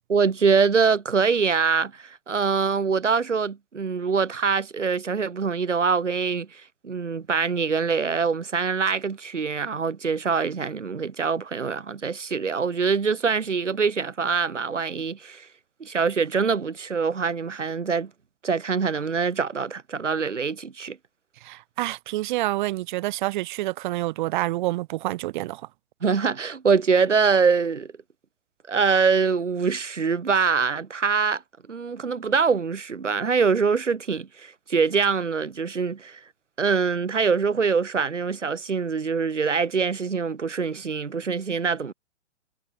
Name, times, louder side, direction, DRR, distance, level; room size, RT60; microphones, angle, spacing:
voice 1, 0.1-15.5 15.8-18.1 18.4-21.0 26.0-27.9 28.7-31.4 31.7-36.2 36.6-41.9, right 5 dB, 75° right, 5.6 m, -24 dB
voice 2, 21.4-25.6, right 17 dB, 40° right, 1.4 m, -28 dB
figure-of-eight pair, 115°, 37 cm